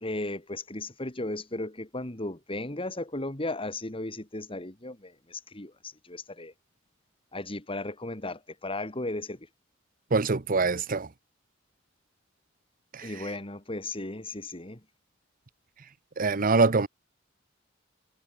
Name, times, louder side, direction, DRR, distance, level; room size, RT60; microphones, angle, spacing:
voice 1, 0.0-6.5 7.3-9.5 13.0-14.8, left 2 dB, 30° left, 2.6 m, -35 dB
voice 2, 10.1-11.1 12.9-13.1 16.2-16.9, right 4 dB, 45° right, 0.9 m, -24 dB
head